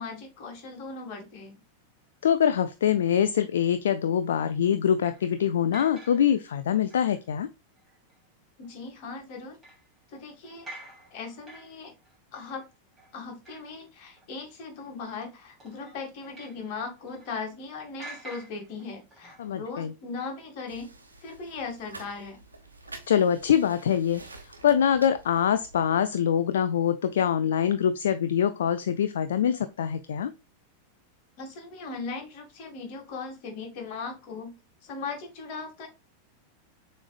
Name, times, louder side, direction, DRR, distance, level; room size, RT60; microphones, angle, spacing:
voice 1, 0.0-1.6 8.6-9.6 10.1-10.7 11.1-11.9 12.3-12.6 13.1-20.9 21.2-22.4 31.4-34.5 34.8-35.9, left 4 dB, 45° left, 3 dB, 1.9 m, -38 dB
voice 2, 2.2-7.5 19.4-19.9 23.1-30.3, left 9 dB, 60° left, 11 dB, 0.3 m, -24 dB
sound 1, 5.0-7.2 7.8-8.2 8.6-8.8 9.6-13.9 14.2-14.3 14.7-15.2 15.6-17.7 18.0-19.5, right 1 dB, 10° right, 3.1 m, -49 dB
sound 2, 20.7-25.8, right 2 dB, 80° right, 1.0 m, -48 dB
6.9 x 3.2 x 2.4 m, 0.28 s
figure-of-eight pair, 90°, 0 cm